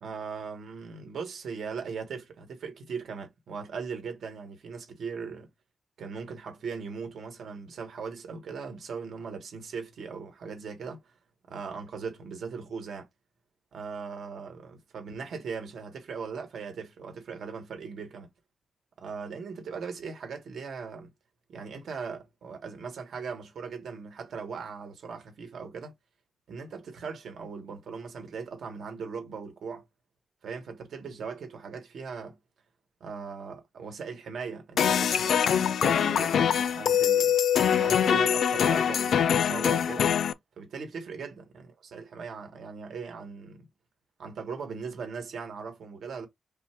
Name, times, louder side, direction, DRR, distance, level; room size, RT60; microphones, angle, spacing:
voice 1, 0.0-5.5 6.0-11.1 11.5-13.1 13.7-18.3 19.0-21.1 21.5-25.9 26.5-29.8 30.4-32.4 33.0-37.3 37.7-40.1 40.6-43.7 44.2-46.3, right 5 dB, 80° right, 1.5 m, -39 dB
sound 1, 34.8-40.3, left 8 dB, 85° left, 0.3 m, -23 dB
5.4 x 2.1 x 4.4 m
wide cardioid pair, 165°, 0 cm